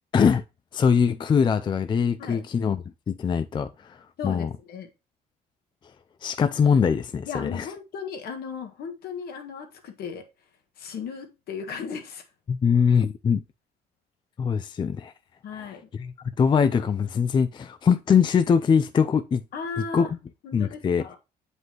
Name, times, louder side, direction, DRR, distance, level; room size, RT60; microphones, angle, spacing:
voice 1, 0.7-3.7 4.2-4.5 6.2-7.7 12.5-13.4 14.4-15.1 15.6-16.1 16.4-19.4 19.8-20.2 20.5-21.0, left 6 dB, 30° left, 0.4 m, -22 dB
voice 2, 4.2-4.9 7.2-10.3 10.8-12.2 15.4-15.8 19.5-20.1 20.4-21.2, left 6 dB, 65° left, 1.6 m, -36 dB
7.8 x 5.3 x 3.0 m
cardioid pair, 110°, 17 cm